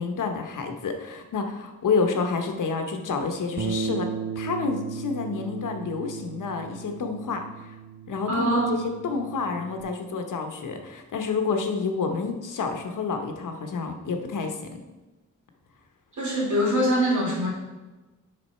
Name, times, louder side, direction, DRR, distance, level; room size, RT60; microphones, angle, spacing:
voice 1, 0.0-4.1 4.4-7.7 8.1-8.8 9.0-14.8, left 4 dB, 80° left, 5 dB, 1.1 m, -29 dB
Bass guitar, 3.6-9.8, right 6 dB, 45° right, 0.6 m, -35 dB
voice 2, 8.3-8.9 16.2-17.5, equal, 70° right, -4 dB, 2.9 m, -23 dB
7.7 x 5.9 x 4.4 m, 1.2 s
wide cardioid pair, 145°, 31 cm